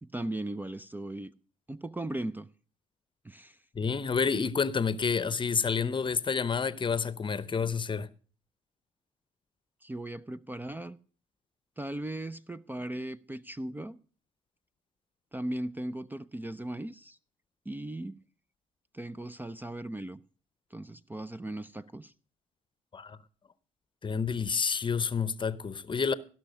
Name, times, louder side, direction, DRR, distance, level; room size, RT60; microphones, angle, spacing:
voice 1, 0.0-1.3 1.7-2.5 3.2-3.6 9.8-11.0 11.8-14.0 15.3-17.2 17.7-18.2 18.9-20.2 20.7-22.1, right 1 dB, 10° right, 0.5 m, -37 dB
voice 2, 3.7-8.1 22.9-23.2 24.0-26.1, left 5 dB, 35° left, 0.8 m, -29 dB
17.0 x 6.0 x 6.4 m
hypercardioid pair, 50°, 15 cm